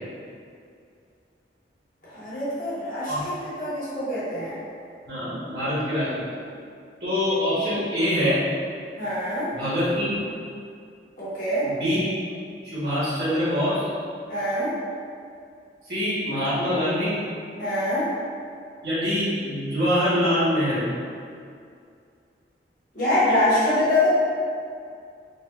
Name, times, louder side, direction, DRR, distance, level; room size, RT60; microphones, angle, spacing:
voice 1, 2.0-4.6 9.0-9.5 11.2-11.7 14.3-14.7 17.6-18.1 22.9-24.1, left 1 dB, 45° left, -11 dB, 1.1 m, -24 dB
voice 2, 5.1-6.3 7.0-8.4 9.5-10.2 11.6-12.1 12.7-13.8 15.8-17.2 18.8-20.8, equal, 60° right, -11 dB, 1.5 m, -24 dB
4.0 x 2.5 x 2.3 m, 2.3 s
head